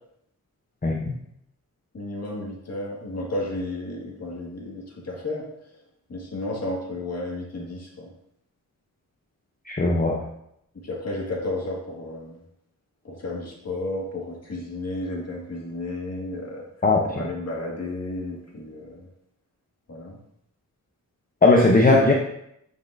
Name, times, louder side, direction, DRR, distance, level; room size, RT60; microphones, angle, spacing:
voice 1, 0.8-1.1 9.7-10.2 16.8-17.3 21.4-22.1, left 2 dB, 30° left, 0 dB, 0.8 m, -18 dB
voice 2, 1.9-5.5 6.1-8.1 10.9-12.4 13.1-16.6 17.1-19.1 19.9-20.2, left 2 dB, 55° left, -2 dB, 1.9 m, -32 dB
9.3 x 5.4 x 2.6 m, 0.75 s
wide cardioid pair, 110°, 31 cm